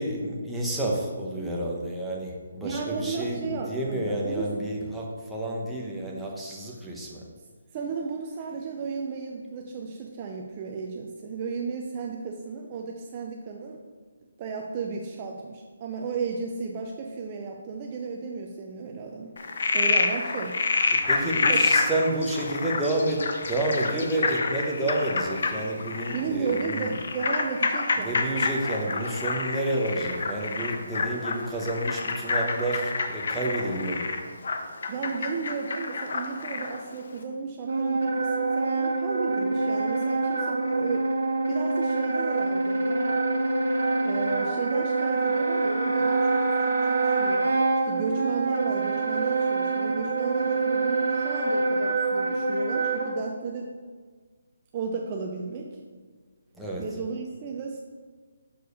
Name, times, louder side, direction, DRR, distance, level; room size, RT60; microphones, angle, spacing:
voice 1, 0.0-3.4 3.7-7.2 20.9-23.2 23.5-26.9 28.0-34.1 56.6-56.8, right 1 dB, 5° right, -4 dB, 0.9 m, -30 dB
voice 2, 2.6-4.5 7.7-13.8 14.4-19.4 19.7-20.6 21.5-21.8 26.1-28.5 34.9-41.1 41.5-43.2 44.0-47.6 47.8-53.7 54.7-55.8 56.8-57.8, right 5 dB, 25° right, 1 dB, 0.5 m, -34 dB
Frog, 19.4-36.8, left 4 dB, 60° left, 0.8 m, -28 dB
Wind instrument woodwind instrument, 37.6-53.1, right 3 dB, 75° right, 1.3 m, -25 dB
6.6 x 4.6 x 5.2 m, 1.5 s
hypercardioid pair, 165°, 0 cm